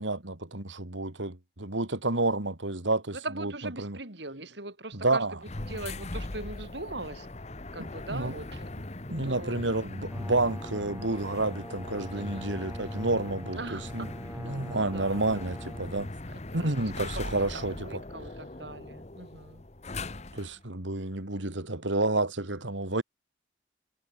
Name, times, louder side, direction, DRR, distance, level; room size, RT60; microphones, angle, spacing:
voice 1, 0.0-3.5 3.8-4.0 4.9-5.3 7.8-8.3 9.1-14.1 14.4-16.1 16.5-18.0 20.3-23.0, right 2 dB, 80° right, 2.8 m, -30 dB
voice 2, 3.2-5.4 5.7-7.3 7.7-8.6 9.2-9.6 12.1-12.7 13.6-14.1 14.7-15.2 16.5-19.6, right 2 dB, 65° right, 4.8 m, -40 dB
sound 1, 5.4-20.6, left 2 dB, 35° left, 1.2 m, -40 dB
Brass instrument, 10.1-15.9, right 1 dB, 5° right, 2.2 m, -46 dB
head